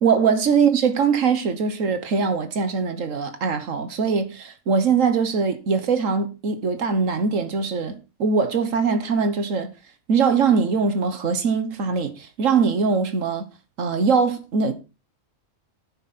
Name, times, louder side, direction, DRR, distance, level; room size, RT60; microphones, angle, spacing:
voice 1, 0.0-9.7 10.1-13.5 13.8-14.7, right 5 dB, 90° right, 1.7 m, -22 dB
10.5 x 10.0 x 4.2 m
omnidirectional pair, 1.3 m